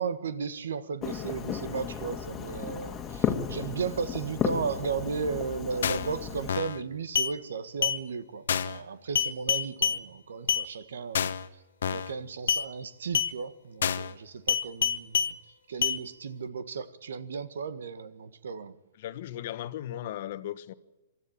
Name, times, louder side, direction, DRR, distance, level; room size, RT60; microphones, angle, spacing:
voice 1, 0.0-11.3 11.9-15.4 15.7-18.8, right 5 dB, 80° right, 1.5 m, -35 dB
Fireworks, 1.0-6.5, left 7 dB, 20° left, 1.8 m, -34 dB
sound 1, 5.8-6.1 6.5-6.8 7.2-7.3 7.8-8.0 8.5-8.8 9.2-10.0 10.5-10.6 11.1-11.5 11.8-12.1 12.5-12.6 13.1-13.3 13.8-14.1 14.5-15.3 15.8-16.0, left 8 dB, 75° left, 1.1 m, -27 dB
voice 2, 19.0-20.7, left 12 dB, 55° left, 1.2 m, -37 dB
24.5 x 13.0 x 8.8 m
hypercardioid pair, 140°, 0 cm